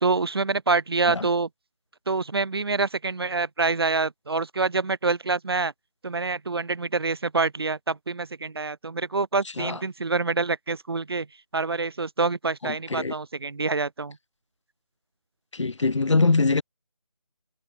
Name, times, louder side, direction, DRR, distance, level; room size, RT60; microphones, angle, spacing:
voice 1, 0.0-1.5 2.1-5.7 6.0-11.3 11.5-14.2, right 3 dB, 45° right, 1.1 m, -26 dB
voice 2, 12.6-13.1 15.5-16.6, left 3 dB, 60° left, 0.9 m, -23 dB
figure-of-eight pair, 165°, 17 cm